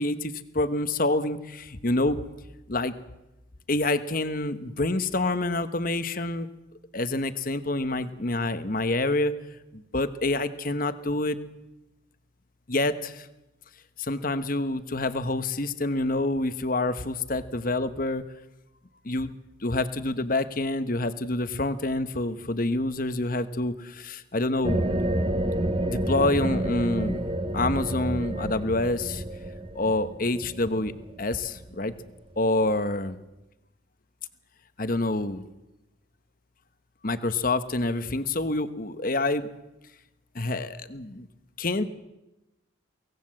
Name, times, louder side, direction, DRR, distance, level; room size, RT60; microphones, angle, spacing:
voice 1, 0.0-2.2 2.7-2.9 3.7-6.5 6.9-9.3 9.7-11.4 12.7-13.3 14.0-18.2 19.0-19.3 19.6-24.8 25.9-27.3 27.5-29.2 29.7-30.9 31.2-31.9 32.4-33.2 34.8-35.4 37.0-39.5 40.3-41.3 41.6-41.9, left 2 dB, 45° left, 11 dB, 1.1 m, -27 dB
sound 1, 24.6-31.9, right 1 dB, 25° right, 1.3 m, -29 dB
24.0 x 17.5 x 7.6 m, 0.97 s
head